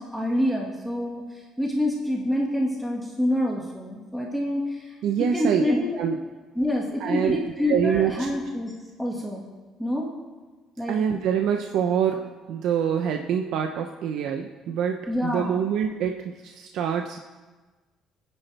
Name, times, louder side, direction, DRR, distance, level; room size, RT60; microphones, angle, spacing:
voice 1, 0.0-6.0 6.6-8.7 9.0-9.5 9.8-10.1 10.8-11.0 15.1-15.6, left 1 dB, ahead, -3 dB, 1.9 m, -27 dB
voice 2, 5.0-5.6 6.0-6.2 7.0-7.4 7.7-8.1 10.9-17.2, right 8 dB, 70° right, 3 dB, 0.9 m, -25 dB
26.5 x 10.0 x 3.4 m, 1.3 s
cardioid pair, 165°, 0 cm